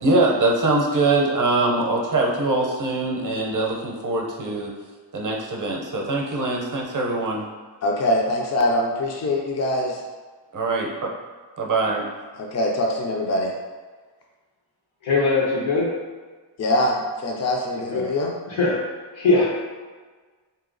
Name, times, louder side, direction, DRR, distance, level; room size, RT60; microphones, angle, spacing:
voice 1, 0.0-4.7 5.1-7.4 10.5-10.9 11.6-12.0, right 2 dB, 45° right, -1 dB, 0.6 m, -22 dB
voice 2, 7.8-10.0 12.3-13.5 16.6-18.3, left 1 dB, 35° left, 0 dB, 0.4 m, -23 dB
voice 3, 15.0-16.0 17.9-18.1 18.5-18.9 19.1-19.6, left 3 dB, 85° left, -4 dB, 1.2 m, -21 dB
3.5 x 2.8 x 3.8 m, 1.4 s
wide cardioid pair, 170°, 47 cm